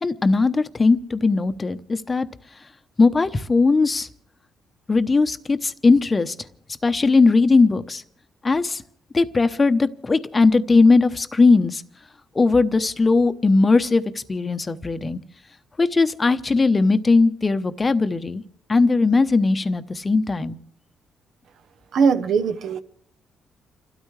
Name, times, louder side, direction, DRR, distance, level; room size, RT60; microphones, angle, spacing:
voice 1, 0.0-2.3 3.0-4.1 4.9-6.3 6.8-8.0 8.4-8.8 9.1-11.8 12.3-15.2 15.8-18.4 18.7-20.6, left 3 dB, 25° left, 0.8 m, -19 dB
voice 2, 21.9-22.8, right 5 dB, 70° right, 0.9 m, -20 dB
29.5 x 13.0 x 3.3 m
cardioid pair, 90°, 0 cm